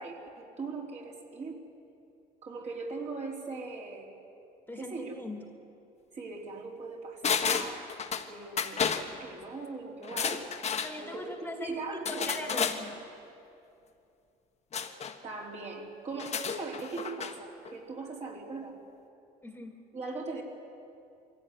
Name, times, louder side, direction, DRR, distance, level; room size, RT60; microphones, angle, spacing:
voice 1, 0.0-1.6 2.4-4.1 4.7-5.2 6.1-10.5 11.0-12.3 15.2-18.8 19.9-20.4, right 3 dB, 40° right, -1 dB, 3.9 m, -40 dB
voice 2, 4.7-5.5 10.8-13.0 19.4-19.7, left 1 dB, 10° left, 3 dB, 2.0 m, -40 dB
sound 1, 7.2-8.3 8.6-9.1 10.0-10.9 12.1-12.8 14.7-15.1 16.1-17.4 17.7-17.8, left 6 dB, 40° left, 1.5 m, -31 dB
22.5 x 16.0 x 9.7 m, 2.7 s
cardioid pair, 110°, 17 cm